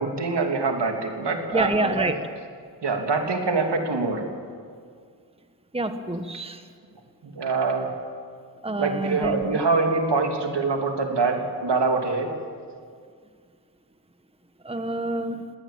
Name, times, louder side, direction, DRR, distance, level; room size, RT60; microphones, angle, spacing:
voice 1, 0.0-2.1 2.8-4.3 7.2-7.9 8.8-12.3, right 4 dB, 70° right, 3 dB, 3.1 m, -24 dB
voice 2, 1.5-2.2 5.7-6.7 8.6-9.5 14.6-15.5, right 2 dB, 15° right, 8 dB, 1.4 m, -27 dB
20.5 x 17.5 x 8.8 m, 2.1 s
cardioid pair, 55°, 43 cm